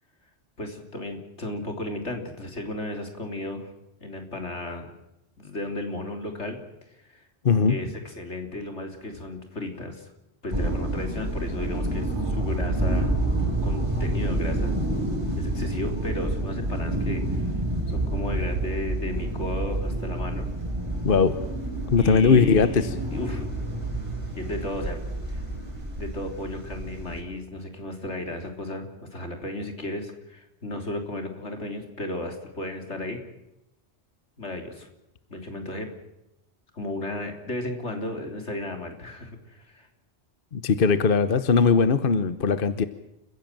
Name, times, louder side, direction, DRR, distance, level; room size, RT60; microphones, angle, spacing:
voice 1, 0.6-3.7 4.0-4.9 5.4-6.6 7.1-7.2 7.7-10.1 10.4-13.2 13.6-14.7 15.4-17.4 17.9-20.5 22.0-23.5 24.4-25.0 26.0-33.2 34.4-34.9 35.3-35.9 36.7-39.9, left 1 dB, 85° left, 5 dB, 3.8 m, -34 dB
voice 2, 7.4-7.8 21.0-21.4 21.9-22.9 40.5-42.9, left 5 dB, 55° left, 12 dB, 1.2 m, -20 dB
sound 1, 10.5-27.2, right 1 dB, 25° right, 4.6 m, -28 dB
29.5 x 16.0 x 7.5 m, 0.89 s
omnidirectional pair, 1.1 m